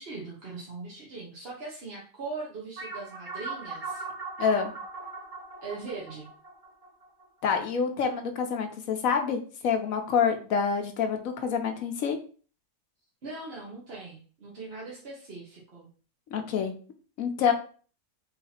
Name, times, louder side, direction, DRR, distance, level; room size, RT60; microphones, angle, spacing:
voice 1, 0.0-4.0 5.6-6.3 13.2-15.9, right 3 dB, 45° right, -5 dB, 1.1 m, -40 dB
sound 1, 2.8-7.6, right 4 dB, 75° right, 2.1 m, -39 dB
voice 2, 4.4-4.7 7.4-12.2 16.3-16.7 17.2-17.5, left 6 dB, 65° left, 5 dB, 1.1 m, -27 dB
4.0 x 2.8 x 4.2 m, 0.40 s
omnidirectional pair, 1.6 m